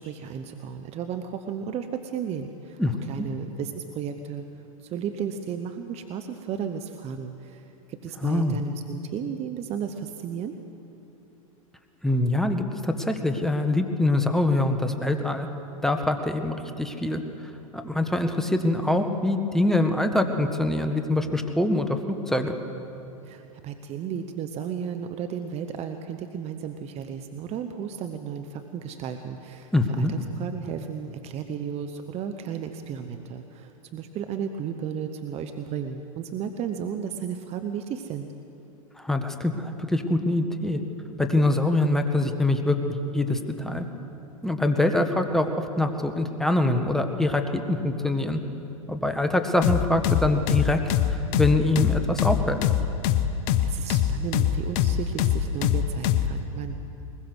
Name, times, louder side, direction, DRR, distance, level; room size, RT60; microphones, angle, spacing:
voice 1, 0.0-2.8 3.1-4.5 4.8-10.5 23.2-38.3 53.6-56.8, right 7 dB, 35° right, 7 dB, 1.1 m, -34 dB
voice 2, 2.8-3.3 8.2-8.6 12.0-15.5 15.8-17.2 17.7-22.0 22.3-22.5 29.7-30.1 39.0-40.8 41.2-42.8 43.1-43.8 44.4-48.4 48.9-50.8 51.1-52.6, left 2 dB, ahead, 6 dB, 1.6 m, -24 dB
sound 1, 49.6-56.3, left 10 dB, 50° left, 1.2 m, -23 dB
21.5 x 21.0 x 6.3 m, 2.9 s
hypercardioid pair, 105°, 18 cm